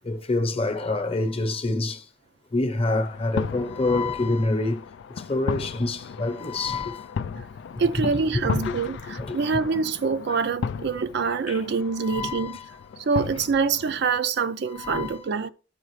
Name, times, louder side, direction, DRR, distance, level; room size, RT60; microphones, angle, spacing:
voice 1, 0.0-2.0 2.5-4.8 5.1-7.1 8.4-8.7 9.2-9.4 10.3-10.4 11.5-11.6 12.0-12.7 14.7-15.2, left 2 dB, 30° left, 0.8 m, -27 dB
sound 1, 2.8-14.2, left 6 dB, 65° left, 0.3 m, -35 dB
voice 2, 7.8-12.6 13.0-15.5, right 5 dB, 60° right, 0.4 m, -25 dB
12.0 x 4.8 x 3.1 m
head